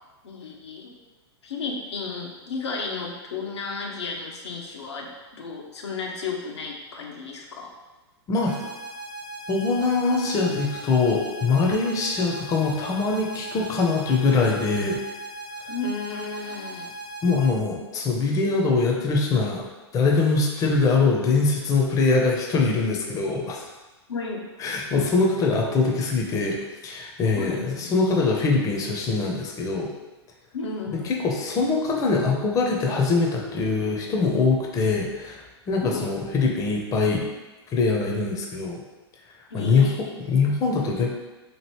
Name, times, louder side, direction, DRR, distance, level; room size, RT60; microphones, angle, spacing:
voice 1, 0.2-1.0 1.4-7.7 15.7-17.0 24.1-24.5 27.3-27.9 30.5-31.2 35.8-36.2 39.5-40.1, left 4 dB, 85° left, 0 dB, 0.6 m, -33 dB
sound 1, 8.5-17.5, right 2 dB, 30° right, 0.7 m, -38 dB
voice 2, 9.5-15.0 17.2-19.7 19.9-23.6 24.6-26.6 26.8-29.9 30.9-35.4 35.7-37.3 37.7-38.8 39.5-39.9 40.3-41.1, left 4 dB, 25° left, 0 dB, 0.5 m, -23 dB
3.0 x 2.5 x 3.0 m, 1.2 s
hypercardioid pair, 110°, 14 cm